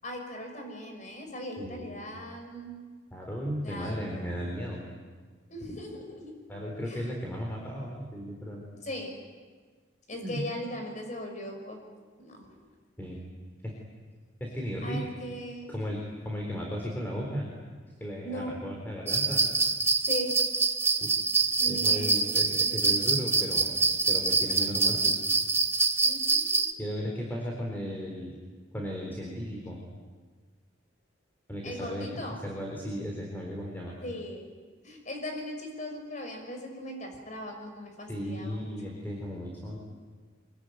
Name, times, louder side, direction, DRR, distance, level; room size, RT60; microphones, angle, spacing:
voice 1, 0.0-2.8 3.6-4.3 5.5-6.3 6.9-7.1 8.8-9.1 10.1-11.8 12.2-12.6 14.8-15.7 18.2-18.6 20.0-20.4 21.6-22.3 22.6-23.2 26.0-26.6 31.6-32.4 34.0-34.5 34.8-39.0, equal, 40° left, 4 dB, 5.8 m, -39 dB
voice 2, 1.6-2.1 3.1-4.8 5.7-5.8 6.5-8.6 10.1-10.4 13.0-13.2 13.6-13.7 14.4-15.1 15.7-17.5 18.0-19.5 21.0-21.1 21.7-23.8 24.1-25.2 26.8-28.4 28.7-29.8 31.5-32.1 32.4-34.0 38.1-39.8, equal, 10° left, -1 dB, 4.0 m, -35 dB
sound 1, 19.1-26.7, right 4 dB, 10° right, 1.0 m, -25 dB
24.5 x 22.5 x 9.4 m, 1.5 s
head